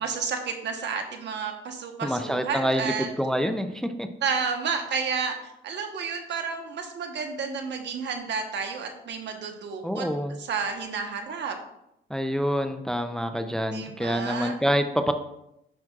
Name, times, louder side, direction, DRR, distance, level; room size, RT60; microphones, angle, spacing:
voice 1, 0.0-3.1 4.2-5.4 5.6-10.1 10.4-11.6 13.7-14.6, right 5 dB, 65° right, 5 dB, 1.2 m, -31 dB
voice 2, 2.0-4.1 9.8-10.4 12.1-15.1, equal, 5° left, 7 dB, 0.5 m, -27 dB
10.5 x 6.1 x 2.4 m, 0.83 s
cardioid pair, 90°, 20 cm